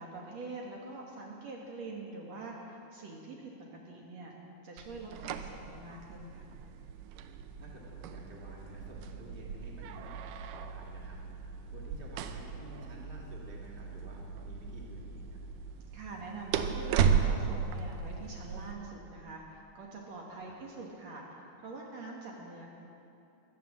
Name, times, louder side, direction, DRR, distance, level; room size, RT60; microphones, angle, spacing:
voice 1, 0.0-3.5 3.9-4.3 4.6-6.4 15.9-22.7, right 3 dB, 60° right, -1 dB, 2.4 m, -44 dB
sound 1, 4.8-18.7, right 7 dB, 85° right, 2.2 m, -36 dB
voice 2, 7.6-10.1 10.5-15.4 20.5-20.6, right 1 dB, 20° right, -3 dB, 1.9 m, -51 dB
14.5 x 11.5 x 7.3 m, 2.7 s
omnidirectional pair, 3.7 m